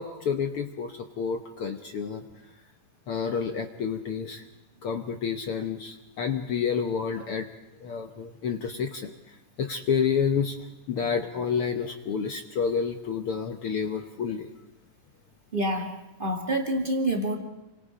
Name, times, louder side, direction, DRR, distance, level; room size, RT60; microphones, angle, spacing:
voice 1, 0.0-2.2 3.1-4.4 4.8-7.5 7.8-9.1 9.6-10.6 10.9-14.5, left 6 dB, 65° left, 6 dB, 1.4 m, -29 dB
voice 2, 15.5-15.9 16.2-17.4, right 1 dB, 20° right, 3 dB, 1.5 m, -27 dB
30.0 x 25.0 x 5.1 m, 0.93 s
omnidirectional pair, 3.9 m